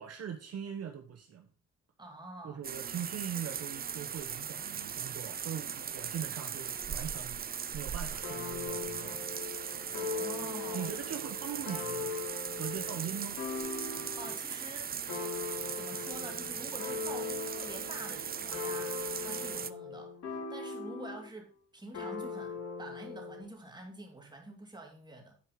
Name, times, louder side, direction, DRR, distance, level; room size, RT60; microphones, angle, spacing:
voice 1, 0.0-1.5 2.4-9.2 10.7-12.1 12.6-13.4, right 8 dB, 55° right, 4 dB, 1.1 m, -41 dB
voice 2, 2.0-2.6 10.0-11.1 13.9-14.9 15.8-25.4, right 2 dB, 15° right, 1 dB, 2.9 m, -47 dB
sound 1, 2.6-19.7, right 8 dB, 30° right, 0.5 m, -39 dB
sound 2, 8.2-14.4 15.1-21.3 21.9-23.4, left 4 dB, 65° left, 4.7 m, -40 dB
10.0 x 4.7 x 5.1 m, 0.37 s
cardioid pair, 90°, 30 cm